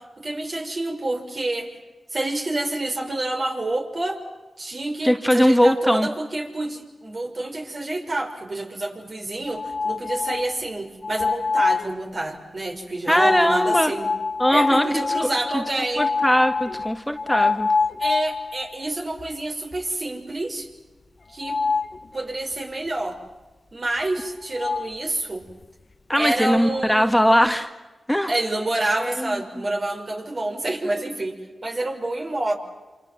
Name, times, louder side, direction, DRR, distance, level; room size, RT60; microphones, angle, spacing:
voice 1, 0.0-1.7 2.1-4.2 4.6-14.1 14.5-16.1 18.0-20.7 21.3-21.6 22.1-23.2 23.7-25.4 26.1-27.1 28.3-32.5, right 2 dB, 50° right, 2 dB, 5.6 m, -28 dB
voice 2, 5.0-6.1 13.1-13.9 14.4-14.9 15.2-15.3 15.5-15.6 16.0-17.7 26.1-27.7 28.1-28.3 29.0-29.1, equal, 5° left, 6 dB, 1.8 m, -20 dB
sound 1, 9.5-10.5 11.0-11.9 13.1-18.8 19.2-19.3 19.7-19.8 21.4-22.0 24.2-24.3 24.6-24.9, left 4 dB, 55° left, 0.9 m, -25 dB
28.0 x 26.5 x 7.5 m, 1.2 s
cardioid pair, 40°, 0 cm